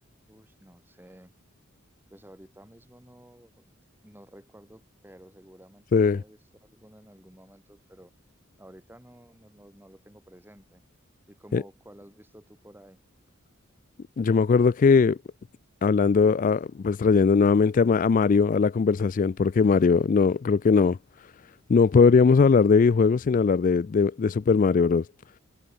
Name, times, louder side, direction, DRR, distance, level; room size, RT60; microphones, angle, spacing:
voice 1, 0.3-1.3 2.1-3.7 4.0-8.1 8.6-10.8 11.3-13.0, equal, 10° right, 3.0 m, -52 dB
voice 2, 14.2-15.2 15.8-21.0 21.7-25.1, left 5 dB, 40° left, 0.3 m, -20 dB
head